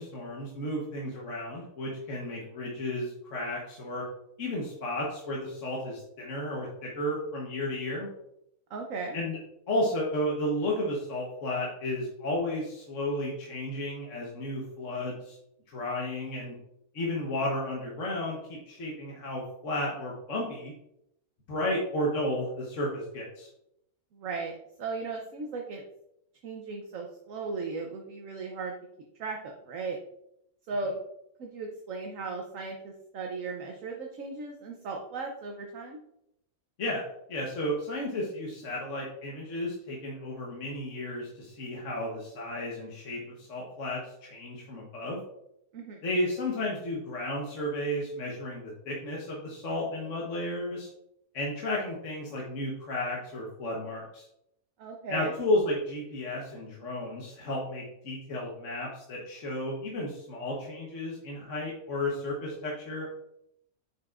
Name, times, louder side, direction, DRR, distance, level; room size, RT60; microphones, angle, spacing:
voice 1, 0.0-4.1 4.4-8.1 9.1-9.4 9.7-15.4 15.7-16.6 16.9-20.7 21.5-23.5 36.8-45.2 46.0-50.9 51.3-54.3 55.1-63.1, left 1 dB, 55° left, -3 dB, 1.5 m, -33 dB
voice 2, 8.7-9.2 24.1-25.8 26.4-28.7 29.2-30.0 30.7-31.0 31.4-36.0 45.7-46.0 54.8-55.3, right 3 dB, 65° right, 1 dB, 1.1 m, -36 dB
7.7 x 5.7 x 2.4 m, 0.79 s
omnidirectional pair, 1.6 m